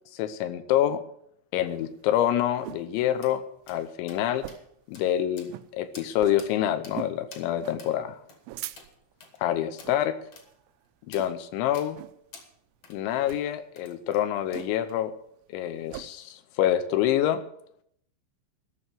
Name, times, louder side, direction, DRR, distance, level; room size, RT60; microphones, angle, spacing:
voice 1, 0.1-1.0 1.5-3.4 3.7-4.4 4.9-8.2 9.4-10.1 11.1-12.0 12.9-15.1 15.5-17.4, left 11 dB, 80° left, 11 dB, 3.2 m, -26 dB
sound 1, 1.7-2.9 3.3-3.4 3.6-3.9 4.3-4.8 5.1-5.2 5.5-5.7 6.2-6.5 6.9-7.2 7.6-7.8 8.2-9.1 9.7-10.0 10.5-10.7 11.1-11.5 11.9-12.2 13.2-13.5 14.5-15.0 15.3-16.1, right 16 dB, 85° right, 3.0 m, -41 dB
sound 2, 3.2-3.3 3.7-3.8 4.1-4.2 4.5-4.6 4.9-5.1 5.4-5.6 5.9-6.1 6.4-6.5 6.8-7.0 7.3-7.5 7.8-7.9 8.3-8.4 8.8-8.9 9.2-9.4 9.8-9.9 10.3-10.5 11.1-11.3 11.7-11.9 12.3-12.5 12.8-13.0 13.3-13.4 13.8-14.2 14.5-15.0, left 4 dB, 45° left, 2.3 m, -48 dB
14.0 x 6.3 x 9.3 m, 0.72 s
omnidirectional pair, 5.4 m